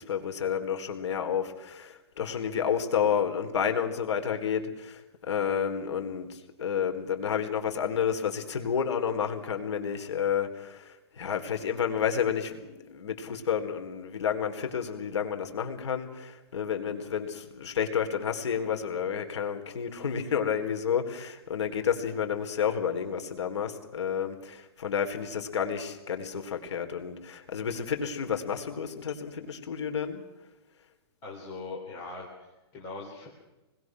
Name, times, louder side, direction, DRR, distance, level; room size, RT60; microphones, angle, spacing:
voice 1, 0.0-5.0 5.3-30.2, left 7 dB, 85° left, 5 dB, 4.2 m, -30 dB
voice 2, 31.2-33.3, left 3 dB, 20° left, -2 dB, 3.8 m, -41 dB
29.0 x 21.0 x 6.2 m, 1.1 s
hypercardioid pair, 180°, 14 cm